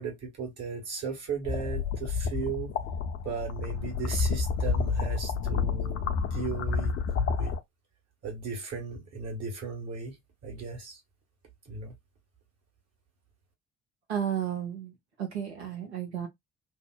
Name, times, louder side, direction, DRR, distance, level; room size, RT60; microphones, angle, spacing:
voice 1, 0.0-2.7 3.2-7.0 7.4-7.6 8.2-10.2 10.4-11.0 11.6-11.9, right 5 dB, 50° right, 1.4 m, -36 dB
sound 1, 1.4-7.6, left 5 dB, 45° left, 0.6 m, -29 dB
voice 2, 14.1-16.3, right 9 dB, 80° right, 0.9 m, -33 dB
2.7 x 2.0 x 2.2 m
figure-of-eight pair, 50°, 32 cm